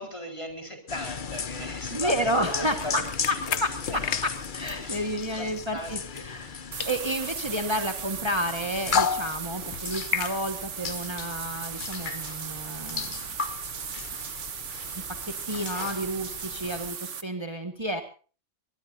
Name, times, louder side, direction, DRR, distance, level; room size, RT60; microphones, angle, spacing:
voice 1, 0.0-3.6 3.9-4.0 4.8-5.1 5.4-6.7, left 1 dB, 25° left, 4 dB, 4.6 m, -38 dB
sound 1, 0.9-16.9, left 6 dB, 45° left, 1.0 m, -35 dB
voice 2, 1.9-6.5 6.8-13.2 15.2-18.0, equal, 20° right, 4 dB, 1.7 m, -31 dB
sound 2, 2.4-6.5 6.8-10.9, left 8 dB, 65° left, 1.2 m, -38 dB
sound 3, 6.7-17.2, right 7 dB, 80° right, 1.4 m, -37 dB
23.0 x 22.0 x 2.8 m, 0.39 s
omnidirectional pair, 1.2 m